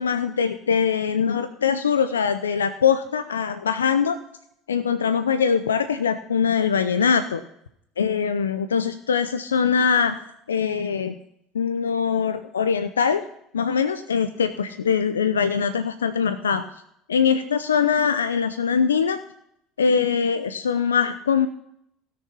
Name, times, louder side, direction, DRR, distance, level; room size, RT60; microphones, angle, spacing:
voice 1, 0.0-4.2 4.7-7.4 8.0-10.2 10.5-11.1 11.5-13.2 13.5-16.6 17.1-19.2 19.8-21.5, left 6 dB, 90° left, 11 dB, 0.6 m, -22 dB
16.5 x 6.8 x 5.5 m, 0.73 s
hypercardioid pair, 70°, 0 cm